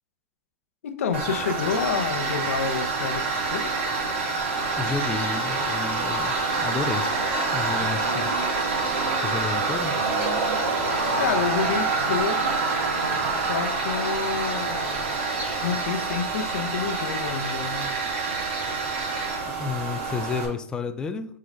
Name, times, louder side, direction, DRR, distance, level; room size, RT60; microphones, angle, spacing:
voice 1, 0.8-3.7 11.2-12.7 13.3-15.1 15.6-17.9, left 6 dB, 75° left, 7 dB, 0.8 m, -29 dB
Tools, 1.1-20.4, right 3 dB, 55° right, 2.2 m, -26 dB
voice 2, 4.8-7.2 7.5-8.4 9.2-10.0 19.5-21.3, left 5 dB, 10° left, 8 dB, 0.4 m, -31 dB
6.6 x 3.9 x 3.9 m, 0.66 s
hypercardioid pair, 145°, 8 cm